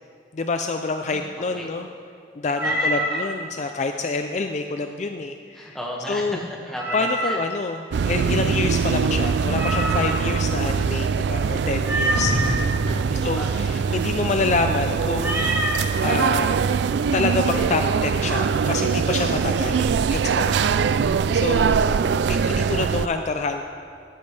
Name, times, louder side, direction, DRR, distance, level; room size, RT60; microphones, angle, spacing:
voice 1, 0.3-1.9 2.4-5.8 6.1-6.4 6.9-12.3 13.2-15.5 16.0-16.6 17.1-20.7 21.3-21.8 22.2-23.6, left 3 dB, 40° left, 6 dB, 0.4 m, -27 dB
voice 2, 1.1-1.7 2.6-3.2 5.5-7.4 12.8-13.8 21.5-22.4, equal, ahead, -2 dB, 1.7 m, -36 dB
Meow, 2.5-3.3 6.7-7.5 9.5-10.3 11.8-12.6 15.2-15.8, equal, 15° right, 1.6 m, -25 dB
sound 1, 7.9-23.1, right 6 dB, 70° right, 0.3 m, -22 dB
sound 2, 12.1-14.6, left 1 dB, 80° left, 2.6 m, -30 dB
13.5 x 13.0 x 3.3 m, 2.4 s
head